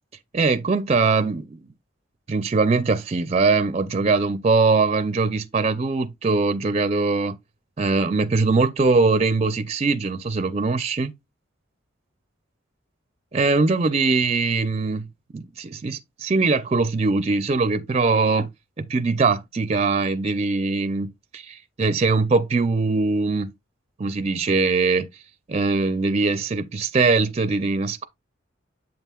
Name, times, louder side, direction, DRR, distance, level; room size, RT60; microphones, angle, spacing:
voice 1, 0.3-1.6 2.3-7.4 7.8-11.1 13.3-15.1 15.3-18.5 18.8-23.5 24.0-25.1 25.5-28.1, right 3 dB, 30° right, 0.4 m, -21 dB
7.7 x 5.5 x 2.3 m
head